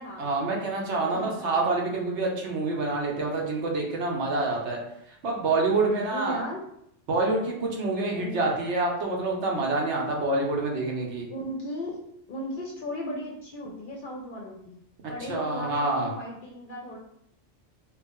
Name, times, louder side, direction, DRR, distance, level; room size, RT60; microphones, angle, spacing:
voice 1, 0.2-4.8 5.2-6.4 7.1-11.3 15.3-16.1, right 3 dB, 75° right, -1 dB, 1.1 m, -27 dB
voice 2, 0.9-2.1 5.8-6.6 8.1-8.4 11.3-12.0 12.3-14.8 15.1-17.0, left 1 dB, 55° left, -1 dB, 0.6 m, -36 dB
3.1 x 2.4 x 3.5 m, 0.75 s
omnidirectional pair, 1.2 m